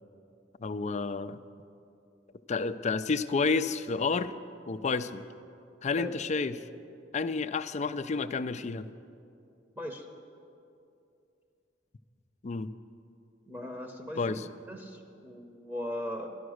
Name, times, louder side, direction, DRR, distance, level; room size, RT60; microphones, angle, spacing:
voice 1, 0.6-1.4 2.5-4.3 4.7-5.2 5.8-6.6 7.1-8.9 12.4-12.7 14.2-14.5, left 4 dB, 40° left, 12 dB, 0.4 m, -30 dB
voice 2, 9.8-10.1 13.5-14.4 14.7-16.3, left 1 dB, 10° right, 2 dB, 0.8 m, -38 dB
12.5 x 11.0 x 6.4 m, 2.6 s
head